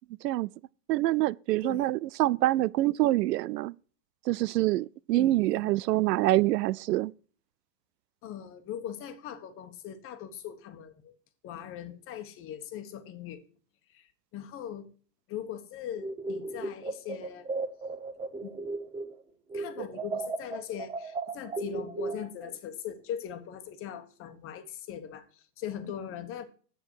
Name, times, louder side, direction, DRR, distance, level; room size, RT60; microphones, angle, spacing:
voice 1, 0.9-3.7 4.3-7.1, right 16 dB, 80° right, 0.6 m, -26 dB
voice 2, 1.6-1.9 5.1-5.7 8.2-11.1 11.4-13.4 13.9-14.9 15.3-17.5 18.4-18.6 19.5-26.4, left 9 dB, 25° left, 1.3 m, -40 dB
sound 1, 15.9-19.2 19.5-22.5, right 3 dB, 10° right, 0.8 m, -35 dB
10.5 x 8.8 x 4.7 m
supercardioid pair, 150°, 48 cm